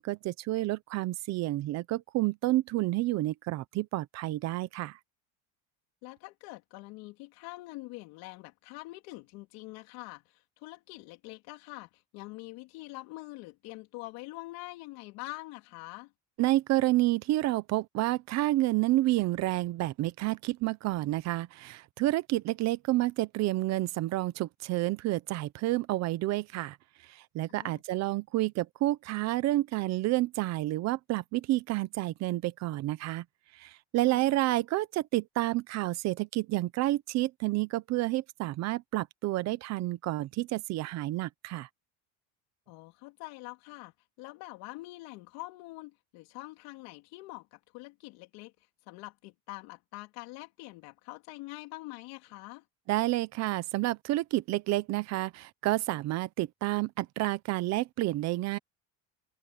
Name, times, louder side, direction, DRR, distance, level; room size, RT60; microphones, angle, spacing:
voice 1, 0.0-5.0 16.4-26.8 27.1-33.2 33.6-41.7 52.9-58.6, right 17 dB, 50° right, 0.9 m, -29 dB
voice 2, 6.0-16.1 27.5-27.8 34.0-34.4 42.7-48.5 48.9-52.6, left 22 dB, 80° left, 3.8 m, -45 dB
cardioid pair, 170°, 35 cm